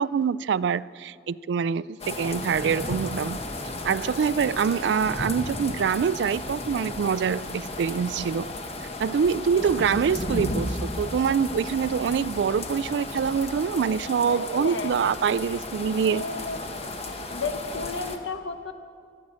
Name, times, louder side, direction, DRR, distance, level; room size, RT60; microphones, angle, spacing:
voice 1, 0.0-3.4 3.8-8.5 9.0-16.3, right 6 dB, 65° right, 18 dB, 0.3 m, -25 dB
sound 1, 2.0-18.2, left 2 dB, 35° left, 1.1 m, -34 dB
voice 2, 14.3-14.9 16.1-16.6 17.3-18.7, left 3 dB, 90° left, 7 dB, 1.1 m, -32 dB
25.0 x 8.7 x 6.3 m, 2.1 s
head